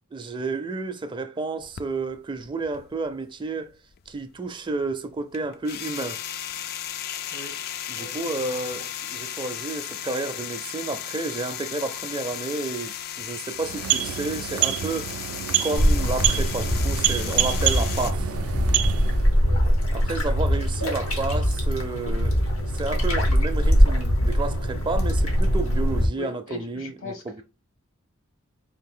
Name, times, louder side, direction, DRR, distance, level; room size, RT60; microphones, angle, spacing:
voice 1, 0.1-3.7 4.1-6.2 7.9-15.1 15.6-18.3 19.9-27.4, right 3 dB, 25° right, 0.4 m, -31 dB
sound 1, 1.6-3.4 3.7-18.1, left 10 dB, 50° left, 0.3 m, -35 dB
voice 2, 7.9-8.6 19.4-19.6 20.1-20.3 26.2-27.4, left 3 dB, 75° left, 1.3 m, -40 dB
sound 2, 13.5-19.3, right 12 dB, 90° right, 0.3 m, -27 dB
sound 3, 15.8-26.1, equal, 90° left, 1.2 m, -22 dB
4.1 x 2.5 x 3.6 m
head